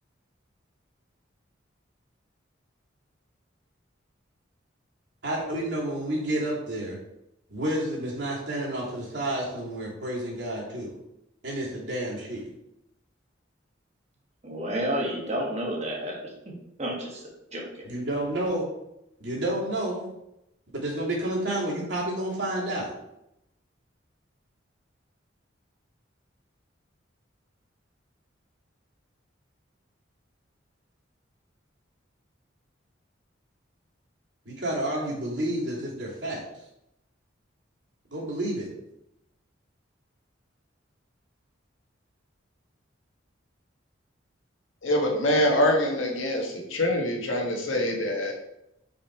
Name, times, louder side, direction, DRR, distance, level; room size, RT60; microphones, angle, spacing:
voice 1, 5.2-7.0 7.5-10.9 11.4-12.5 17.8-18.6 19.2-20.1 20.7-22.9 34.4-36.4 38.1-38.7, right 1 dB, 65° right, -5 dB, 2.5 m, -30 dB
voice 2, 14.4-17.9, equal, 35° right, -1 dB, 1.5 m, -31 dB
voice 3, 44.8-48.3, left 1 dB, 90° left, 0 dB, 1.5 m, -24 dB
5.3 x 5.0 x 4.5 m, 0.85 s
head